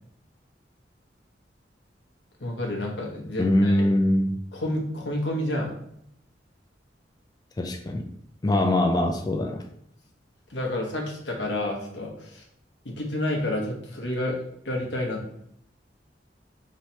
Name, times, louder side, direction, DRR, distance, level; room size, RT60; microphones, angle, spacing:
voice 1, 2.4-3.9 4.5-5.7 10.5-12.4 12.8-14.4 14.6-15.3, left 1 dB, 85° left, 0 dB, 1.0 m, -29 dB
voice 2, 3.4-4.4 7.6-8.1 8.4-9.6, left 1 dB, 20° left, 4 dB, 0.3 m, -22 dB
3.1 x 2.8 x 4.3 m, 0.71 s
head